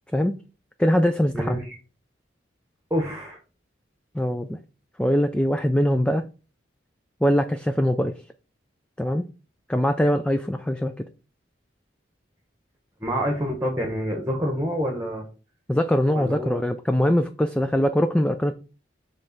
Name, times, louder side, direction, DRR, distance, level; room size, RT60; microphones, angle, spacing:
voice 1, 0.8-1.6 4.1-4.6 5.0-6.2 7.2-8.1 9.0-9.2 9.7-10.9 15.7-18.5, equal, 5° left, 0.3 m, -22 dB
voice 2, 1.3-1.8 2.9-3.4 13.0-15.2 16.1-16.6, equal, 15° right, 1.3 m, -27 dB
6.7 x 3.2 x 5.9 m
head